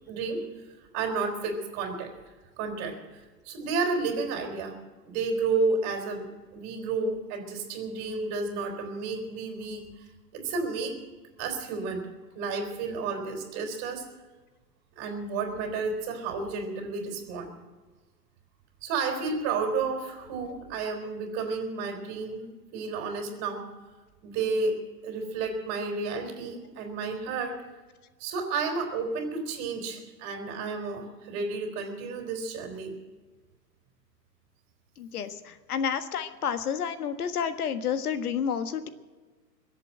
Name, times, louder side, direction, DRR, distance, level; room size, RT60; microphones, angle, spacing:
voice 1, 0.1-0.4 0.9-2.1 2.6-4.7 5.0-6.2 6.5-11.0 11.4-12.0 12.3-14.1 15.0-17.5 18.8-23.7 24.2-27.6 28.2-32.9, right 4 dB, 35° right, 4 dB, 4.3 m, -31 dB
voice 2, 35.0-38.9, left 7 dB, 60° left, 10 dB, 1.6 m, -30 dB
22.0 x 8.3 x 7.6 m, 1.3 s
hypercardioid pair, 120°, 49 cm